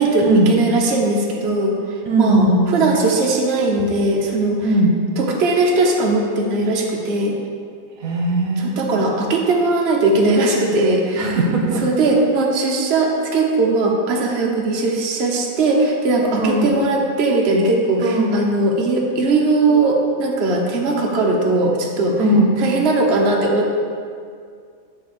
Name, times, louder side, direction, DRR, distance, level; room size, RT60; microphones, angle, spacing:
voice 1, 0.0-1.7 2.2-4.7 5.2-7.4 8.6-11.4 11.8-22.2 22.6-23.7, right 2 dB, 50° right, -1 dB, 1.1 m, -19 dB
voice 2, 2.1-2.7 4.6-5.0 8.0-8.8 11.2-11.8 16.4-16.7 18.0-18.3 22.2-22.5, right 1 dB, 70° right, 0 dB, 1.4 m, -18 dB
10.5 x 3.5 x 6.7 m, 2.2 s
omnidirectional pair, 1.5 m